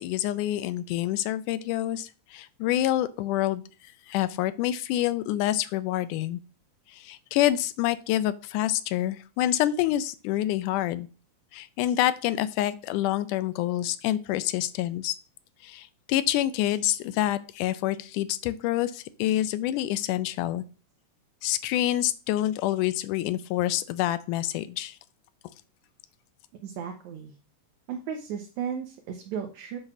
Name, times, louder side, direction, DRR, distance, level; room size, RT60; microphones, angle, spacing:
voice 1, 0.0-3.6 4.1-6.4 6.9-11.1 11.5-15.2 15.6-20.6 21.4-25.0, left 13 dB, 90° left, 14 dB, 2.1 m, -27 dB
voice 2, 26.6-27.3 27.9-29.8, right 7 dB, 70° right, 3 dB, 2.2 m, -35 dB
7.8 x 4.0 x 6.0 m, 0.36 s
omnidirectional pair, 3.5 m